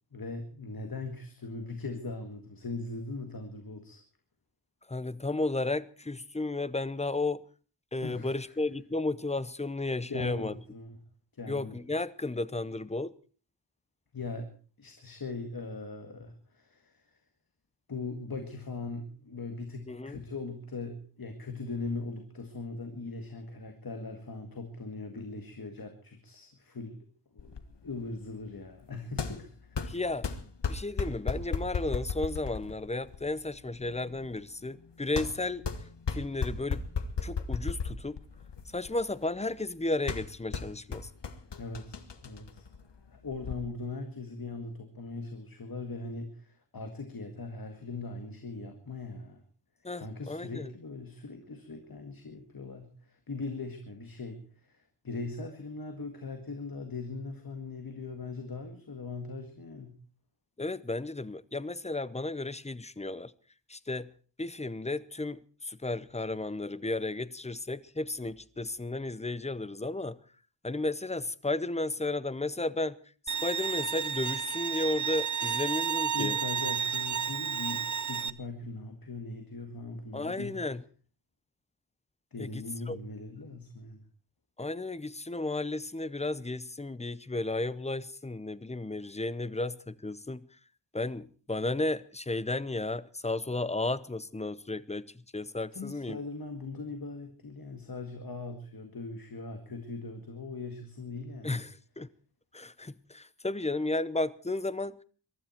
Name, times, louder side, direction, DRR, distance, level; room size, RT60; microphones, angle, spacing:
voice 1, 0.1-4.0 8.0-8.6 10.1-11.0 11.3-11.8 14.1-14.5 14.8-17.2 17.9-27.1 27.3-30.0 41.6-42.7 43.1-49.4 49.9-60.0 75.4-75.7 76.1-80.6 82.3-84.0 95.7-101.6, left 3 dB, 55° left, 2.0 m, -40 dB
voice 2, 4.9-7.4 7.9-10.5 11.5-13.1 19.9-20.2 29.9-30.3 30.7-35.6 36.1-36.8 37.2-38.2 38.7-41.1 49.8-50.7 60.6-63.3 63.7-64.1 64.4-70.2 70.6-73.0 73.3-76.4 80.1-80.8 82.4-83.0 84.6-90.5 90.9-96.2 101.4-102.1 102.5-105.0, left 2 dB, 15° left, 0.7 m, -33 dB
sound 1, 27.4-43.6, left 5 dB, 70° left, 1.5 m, -37 dB
Bowed string instrument, 73.3-78.3, right 8 dB, 45° right, 0.8 m, -31 dB
23.0 x 12.5 x 4.5 m
wide cardioid pair, 100°, 43 cm